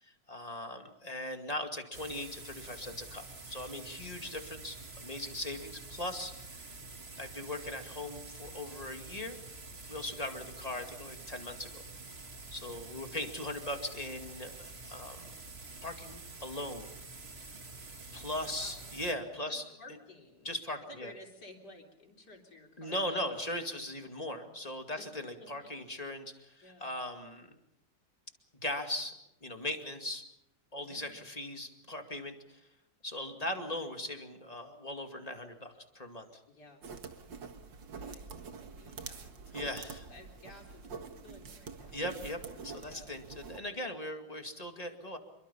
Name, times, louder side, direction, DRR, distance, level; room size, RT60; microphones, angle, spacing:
voice 1, 0.0-6.3 7.2-9.4 9.9-11.8 12.5-15.3 15.8-16.9 18.1-19.6 20.4-21.1 22.8-27.6 28.6-30.2 30.7-32.6 33.0-36.4 39.5-40.0 41.9-45.2, left 1 dB, 20° left, 5 dB, 2.3 m, -39 dB
sound 1, 1.9-19.1, right 3 dB, 35° right, 2.2 m, -48 dB
voice 2, 18.4-18.9 19.5-20.5 20.9-23.9 25.0-25.1 25.4-25.7 26.6-26.9 30.8-31.3 36.5-36.9 38.0-38.3 38.6-39.7 40.1-40.9 41.2-42.0 42.8-43.2, left 2 dB, 60° left, 2 dB, 4.4 m, -54 dB
sound 2, 36.8-43.6, right 5 dB, 80° right, 2.4 m, -46 dB
27.0 x 23.0 x 5.6 m, 0.85 s
omnidirectional pair, 2.0 m